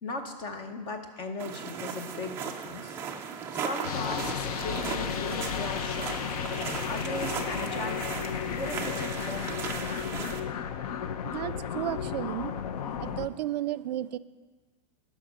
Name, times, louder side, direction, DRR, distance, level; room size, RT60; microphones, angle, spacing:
voice 1, 0.0-3.0 3.5-6.2 6.8-9.8, left 2 dB, 25° left, 6 dB, 0.8 m, -37 dB
sound 1, 1.4-10.4, right 7 dB, 10° right, 0.4 m, -37 dB
sound 2, 3.8-13.3, left 8 dB, 65° left, 0.6 m, -33 dB
voice 2, 11.2-12.6 13.0-14.2, right 13 dB, 85° right, 17 dB, 0.4 m, -33 dB
11.5 x 6.0 x 5.2 m, 1.3 s
supercardioid pair, 170°, 21 cm